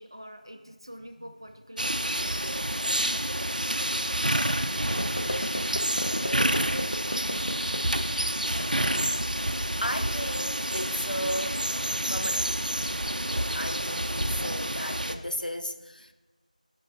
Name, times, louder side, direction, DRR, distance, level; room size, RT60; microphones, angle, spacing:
voice 1, 0.0-3.4 14.4-15.0, equal, 35° right, 0.5 m, -46 dB
sound 1, 1.8-15.1, right 1 dB, 80° right, 0.5 m, -28 dB
voice 2, 4.3-4.6 6.2-6.8 9.8-11.7 12.1-12.5 13.3-16.1, equal, 90° left, 0.7 m, -35 dB
sound 2, 4.6-13.0, equal, 5° left, 1.1 m, -52 dB
sound 3, 4.9-13.4, equal, 45° left, 0.6 m, -38 dB
14.0 x 5.3 x 2.7 m
figure-of-eight pair, 175°, 4 cm